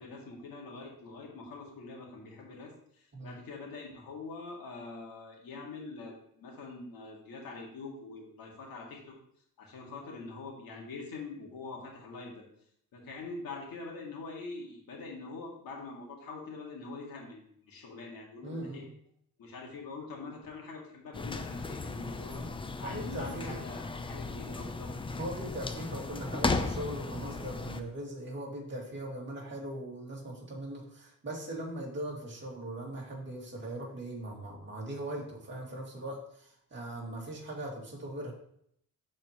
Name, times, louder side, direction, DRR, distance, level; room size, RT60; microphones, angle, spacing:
voice 1, 0.0-9.1 9.6-12.4 12.9-18.8 19.4-22.4 22.8-24.9, left 3 dB, 85° left, -1 dB, 2.1 m, -44 dB
voice 2, 18.4-18.9 22.4-22.5 22.8-23.6 24.8-38.3, right 1 dB, 35° right, -2 dB, 2.2 m, -40 dB
sound 1, 21.1-27.8, left 3 dB, 15° left, 0.4 m, -36 dB
13.0 x 4.4 x 3.0 m, 0.68 s
cardioid pair, 130°, 34 cm